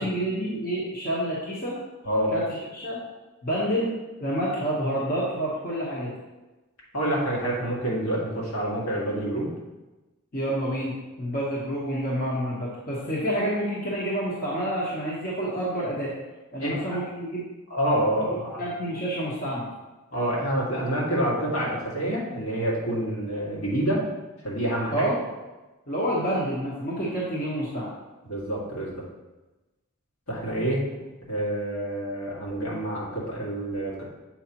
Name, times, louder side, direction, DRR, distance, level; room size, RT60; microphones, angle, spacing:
voice 1, 0.0-1.8 2.3-2.4 2.7-3.0 3.4-3.9 4.2-6.1 10.3-10.9 11.2-16.1 16.5-17.4 18.6-19.7 24.9-25.3 25.9-27.9, right 1 dB, 40° left, -6 dB, 1.1 m, -28 dB
voice 2, 6.9-9.5 16.6-17.0 17.7-18.6 20.1-24.0 24.4-25.1 28.2-29.0 30.3-30.9 31.3-34.0, right 1 dB, 75° left, -5 dB, 2.0 m, -27 dB
7.2 x 4.8 x 2.9 m, 1.1 s
head